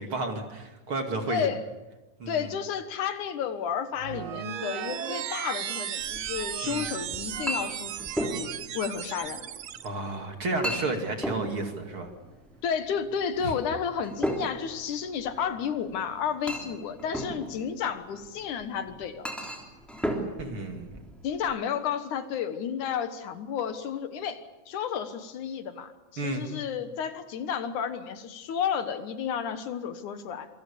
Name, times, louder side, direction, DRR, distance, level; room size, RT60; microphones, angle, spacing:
voice 1, 0.0-1.5 2.2-2.5 6.6-6.8 9.8-12.1 13.4-13.5 20.4-21.0 26.2-26.5, right 2 dB, 40° right, 4 dB, 3.1 m, -32 dB
voice 2, 1.3-1.6 2.3-9.4 12.6-19.3 21.2-30.5, left 7 dB, 70° left, 9 dB, 2.7 m, -32 dB
sound 1, 4.0-9.9, right 10 dB, 85° right, 1.1 m, -35 dB
Chink clink, 6.0-21.5, equal, ahead, 3.0 m, -37 dB
27.0 x 24.5 x 7.0 m, 1.1 s
omnidirectional pair, 3.7 m